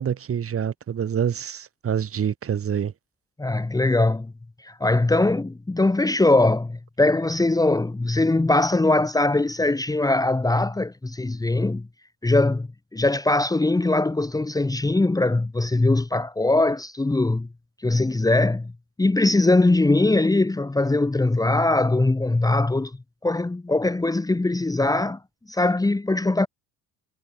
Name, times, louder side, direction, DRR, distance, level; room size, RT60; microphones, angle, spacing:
voice 1, 0.0-2.9, right 8 dB, 40° right, 3.4 m, -26 dB
voice 2, 3.4-4.3 4.6-11.8 12.2-17.5 17.8-18.7 19.0-22.9 23.2-25.2 25.5-26.5, left 2 dB, 10° left, 1.6 m, -21 dB
cardioid pair, 115°, 35 cm